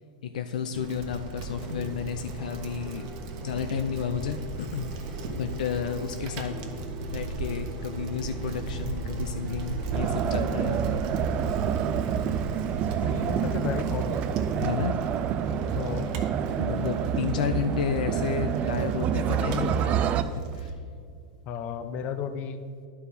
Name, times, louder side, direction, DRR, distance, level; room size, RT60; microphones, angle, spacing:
voice 1, 0.2-3.1 3.4-11.1 14.6-15.0 16.6-20.8, left 7 dB, 85° left, 8 dB, 0.5 m, -32 dB
Bicycle, 0.7-20.7, right 2 dB, 55° right, 1.1 m, -37 dB
sound 1, 1.5-17.1, right 2 dB, 15° right, 1.0 m, -46 dB
sound 2, 9.9-20.2, right 9 dB, 35° right, 0.4 m, -28 dB
voice 2, 13.0-14.2 15.7-16.2 21.5-22.6, left 7 dB, 40° left, 10 dB, 0.6 m, -33 dB
11.0 x 4.6 x 5.1 m, 2.3 s
supercardioid pair, 135°, 4 cm